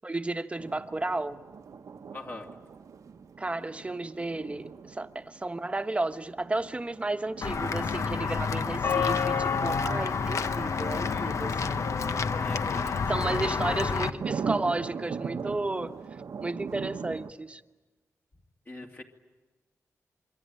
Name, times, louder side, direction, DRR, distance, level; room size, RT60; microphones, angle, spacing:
voice 1, 0.0-1.4 3.4-11.8 12.9-16.0 16.4-17.6, right 2 dB, 20° right, 8 dB, 1.2 m, -33 dB
sound 1, 0.6-17.3, right 6 dB, 80° right, 1.1 m, -41 dB
voice 2, 2.1-2.5 12.3-14.5 18.7-19.0, left 2 dB, 40° left, 1 dB, 2.7 m, -44 dB
Walk footsteps / Bell, 7.4-14.1, left 5 dB, 65° left, 1.0 m, -28 dB
27.0 x 23.5 x 9.2 m, 1.2 s
wide cardioid pair, 100°, 6 cm